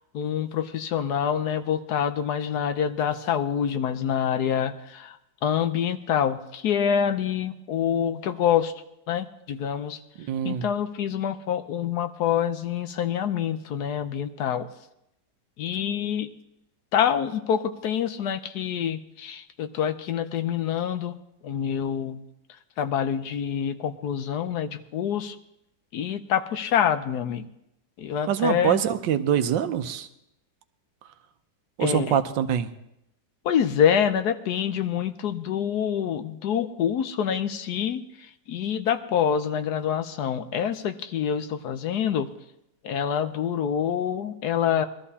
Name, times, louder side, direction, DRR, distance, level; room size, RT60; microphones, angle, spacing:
voice 1, 0.1-5.2 5.4-8.7 9.1-10.0 10.4-14.7 15.6-16.3 16.9-21.1 21.4-22.2 22.8-25.4 25.9-27.5 28.0-28.8 31.8-32.2 33.4-38.0 38.5-42.3 42.8-44.8, left 8 dB, 70° left, 10 dB, 1.2 m, -26 dB
voice 2, 10.2-10.7 28.3-30.1 31.8-32.7, right 9 dB, 85° right, 10 dB, 1.4 m, -24 dB
21.5 x 13.0 x 2.8 m, 0.82 s
omnidirectional pair, 1.9 m